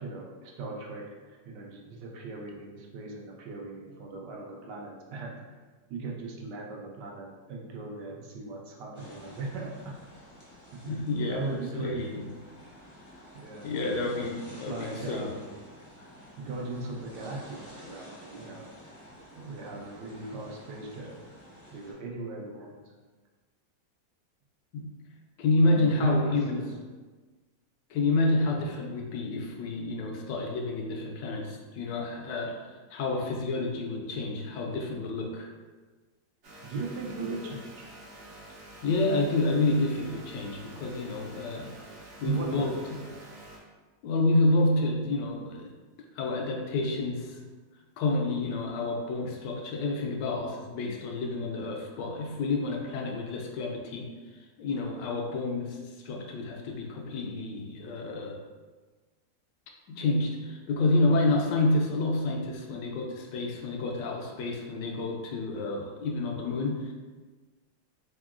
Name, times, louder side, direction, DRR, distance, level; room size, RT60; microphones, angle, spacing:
voice 1, 0.0-5.6 5.9-10.0 10.7-10.9 11.3-12.2 13.3-13.7 14.7-15.5 16.4-18.7 19.3-21.2 21.7-22.9 25.6-26.7 36.6-37.9 42.2-42.8, right 3 dB, 75° right, -1 dB, 1.2 m, -38 dB
sound 1, 8.9-21.9, equal, 15° left, 0.6 m, -50 dB
voice 2, 10.8-12.3 13.6-15.3 24.7-24.9 25.4-26.6 27.9-35.5 38.8-41.7 42.2-43.0 44.0-45.7 46.1-47.4 48.0-54.1 54.6-58.4 59.9-66.9, left 2 dB, 75° left, 1 dB, 1.2 m, -29 dB
sound 2, 36.4-43.6, right 1 dB, 55° right, 1.0 m, -48 dB
3.7 x 3.5 x 2.4 m, 1.3 s
omnidirectional pair, 2.0 m